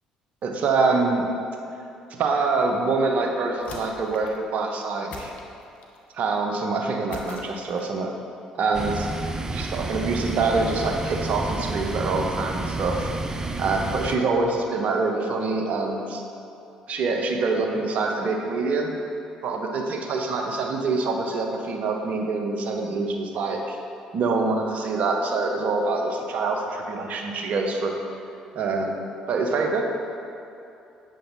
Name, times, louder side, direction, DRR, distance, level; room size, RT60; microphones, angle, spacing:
voice 1, 0.4-1.2 2.1-5.3 6.1-8.1 8.5-9.1 9.5-13.1 13.6-16.2 16.9-19.0 19.4-23.8 24.1-28.0 28.5-29.0 29.3-29.8, right 3 dB, 60° right, 2 dB, 0.8 m, -25 dB
sound 1, 3.6-4.4 5.1-6.0 7.1-8.0, left 2 dB, 65° left, 0.8 m, -42 dB
sound 2, 8.7-14.2, right 2 dB, 25° right, 0.5 m, -30 dB
7.7 x 6.8 x 2.7 m, 2.7 s
hypercardioid pair, 55°, 3 cm